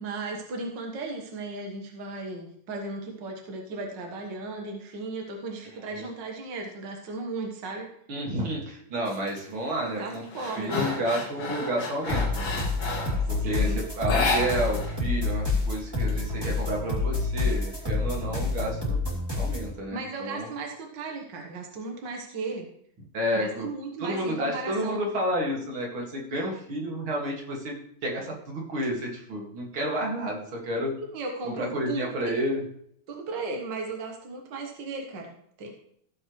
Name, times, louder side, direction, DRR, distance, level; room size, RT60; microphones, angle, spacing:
voice 1, 0.0-7.9 9.8-11.0 13.2-13.8 19.9-22.7 23.3-25.0 31.0-32.4 33.1-35.7, right 3 dB, 60° right, 2 dB, 2.0 m, -36 dB
voice 2, 8.1-10.2 10.6-12.4 13.3-19.0 19.3-20.5 23.1-23.7 24.0-27.8 28.0-30.9 31.6-32.6, equal, 85° right, -1 dB, 2.9 m, -30 dB
sound 1, 9.1-9.4 9.8-13.3 14.0-15.0 15.2-15.3 15.7-16.7, left 3 dB, 75° left, 2.4 m, -31 dB
sound 2, 12.1-19.7, left 3 dB, 10° right, 3.2 m, -28 dB
15.5 x 7.7 x 3.1 m, 0.67 s
omnidirectional pair, 2.2 m